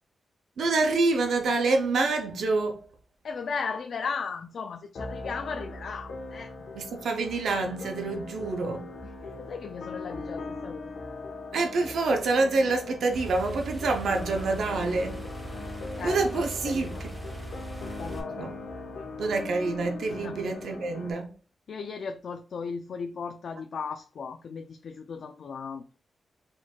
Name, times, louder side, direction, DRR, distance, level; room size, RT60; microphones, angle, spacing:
voice 1, 0.6-2.8 6.7-8.9 11.5-15.2 16.0-17.1 18.4-18.5 19.2-21.3, right 3 dB, 80° right, 0.7 m, -27 dB
voice 2, 3.2-6.5 9.0-10.9 15.6-17.0 18.0-18.5 20.2-20.4 21.7-25.8, left 5 dB, 65° left, 0.4 m, -36 dB
sound 1, 4.9-21.1, left 3 dB, 85° left, 1.1 m, -40 dB
sound 2, 13.1-18.2, right 1 dB, 20° right, 1.4 m, -40 dB
4.5 x 4.4 x 2.4 m
wide cardioid pair, 130°, 0 cm